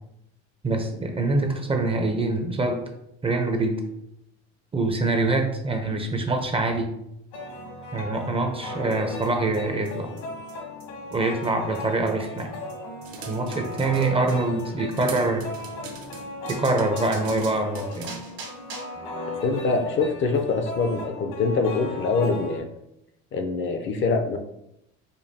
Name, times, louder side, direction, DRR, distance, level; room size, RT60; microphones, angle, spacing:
voice 1, 0.6-2.8 3.2-3.8 4.7-6.9 7.9-10.1 11.1-12.5 13.3-15.5 16.5-18.1, right 2 dB, 20° right, 4 dB, 0.5 m, -25 dB
sound 1, 7.3-22.6, left 2 dB, 70° left, 1.2 m, -37 dB
sound 2, 8.9-9.0 9.2-9.3 9.5-9.6 9.9-10.0 10.2-10.3 10.5-10.6 10.8-10.9 11.1-11.2 11.4-11.5 11.7-11.8 12.1-12.2 12.4-12.5 12.7-12.8 13.0-13.1 13.3-13.4 13.6-13.7 14.0-14.1 14.3-14.4 14.6-14.7 14.9-15.0 15.2-15.3 15.5-15.6 15.9-16.0 16.2-16.3 16.5-19.0, right 4 dB, 90° right, 1.5 m, -42 dB
sound 3, 13.0-14.5 15.0-18.2, right 5 dB, 65° right, 0.8 m, -42 dB
voice 2, 19.4-22.7 23.3-24.4, left 4 dB, 40° left, 6 dB, 0.5 m, -24 dB
5.2 x 2.3 x 2.6 m, 0.81 s
supercardioid pair, 100°, 31 cm